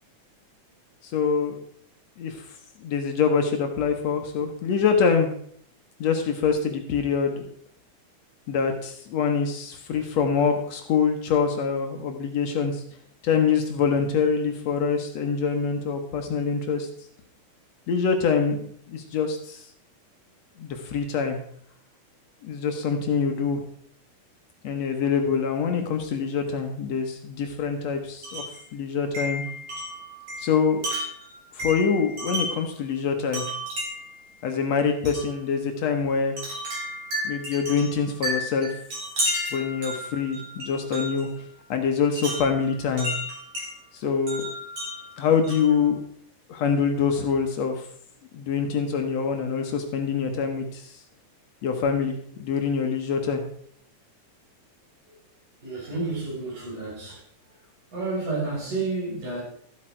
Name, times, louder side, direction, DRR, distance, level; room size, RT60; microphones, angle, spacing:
voice 1, 1.0-1.6 2.2-2.5 2.8-5.3 6.0-7.5 8.5-12.8 13.2-16.9 17.9-18.6 18.9-19.7 20.6-21.4 22.4-23.6 24.6-28.4 28.7-29.5 30.4-30.8 31.6-33.5 34.4-36.4 37.2-38.7 39.5-41.3 41.7-43.1 43.9-44.5 45.2-46.0 46.5-47.9 48.3-50.9 51.6-53.4, left 6 dB, 65° left, 2.1 m, -25 dB
Wind chime, 28.2-28.6 29.1-32.7 33.3-34.2 35.0-35.3 36.4-41.3 42.2-43.7 44.3-45.8, equal, 50° right, 5.1 m, -32 dB
voice 2, 55.6-57.2 57.9-59.4, right 3 dB, 80° right, 7.4 m, -30 dB
13.5 x 8.1 x 4.5 m
omnidirectional pair, 3.6 m